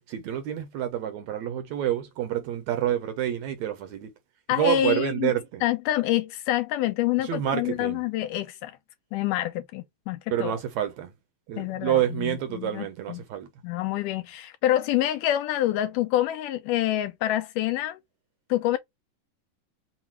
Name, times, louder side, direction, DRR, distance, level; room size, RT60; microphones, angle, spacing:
voice 1, 0.1-4.1 4.5-5.6 7.2-8.0 10.3-11.1 11.5-13.5, right 11 dB, 75° right, 1.8 m, -28 dB
voice 2, 4.5-5.3 5.6-8.8 9.1-10.6 11.6-13.2 13.6-18.0 18.5-18.8, left 13 dB, 85° left, 2.1 m, -27 dB
5.6 x 2.3 x 2.9 m
omnidirectional pair, 3.8 m